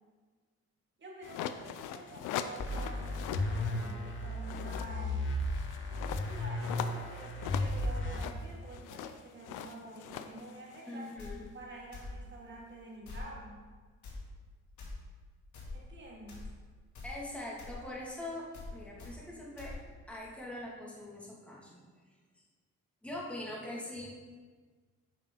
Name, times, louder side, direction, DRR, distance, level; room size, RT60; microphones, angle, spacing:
voice 1, 1.0-5.2 6.2-11.1 11.5-13.7 15.7-16.5, right 2 dB, 40° right, -2 dB, 2.4 m, -48 dB
sound 1, 1.2-3.9 4.3-11.4, left 9 dB, 90° left, 0.5 m, -42 dB
sound 2, 2.6-8.2, left 1 dB, 40° left, 1.6 m, -34 dB
voice 2, 10.9-11.5 17.0-19.8 20.1-21.8 23.0-24.0, left 1 dB, 5° left, -5 dB, 2.3 m, -42 dB
sound 3, 11.2-11.3 11.9-12.1 13.0-13.3 14.0-14.2 14.8-14.9 15.5-15.7 16.3-16.5 16.9-17.1 17.6-17.8 18.5-18.7 19.0-19.1 19.6-19.7, left 3 dB, 75° left, 2.4 m, -44 dB
9.1 x 5.8 x 3.9 m, 1.5 s
cardioid pair, 90°, 30 cm